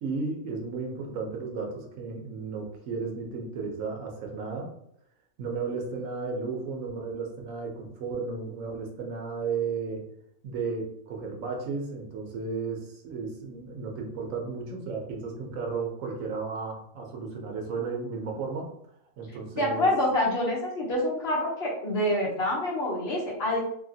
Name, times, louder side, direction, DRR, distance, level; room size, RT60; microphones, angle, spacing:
voice 1, 0.0-4.7 5.4-10.0 10.4-18.7 19.2-19.9, right 4 dB, 80° right, 1 dB, 1.1 m, -34 dB
voice 2, 19.5-23.6, left 1 dB, 55° left, -3 dB, 1.0 m, -26 dB
2.9 x 2.7 x 2.6 m, 0.71 s
omnidirectional pair, 1.4 m